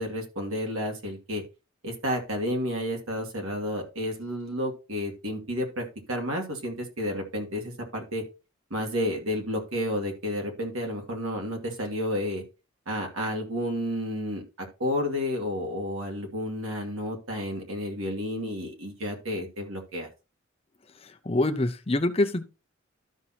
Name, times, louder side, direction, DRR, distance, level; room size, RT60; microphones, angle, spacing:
voice 1, 0.0-1.4 1.8-8.2 8.7-12.4 12.9-20.1, equal, 90° right, 2.4 m, -31 dB
voice 2, 21.0-22.4, left 2 dB, 30° left, 0.7 m, -25 dB
12.5 x 6.0 x 2.9 m
head